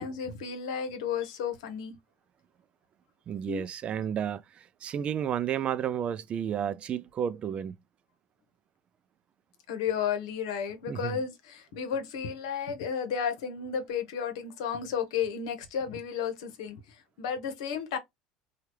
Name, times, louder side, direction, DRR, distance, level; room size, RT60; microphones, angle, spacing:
voice 1, 0.0-1.9 3.5-3.6 9.7-16.8 17.2-18.0, left 7 dB, 80° left, 0.9 m, -33 dB
voice 2, 3.3-7.7 10.9-11.2, right 9 dB, 40° right, 0.3 m, -32 dB
3.1 x 2.3 x 2.9 m
supercardioid pair, 95°, 3 cm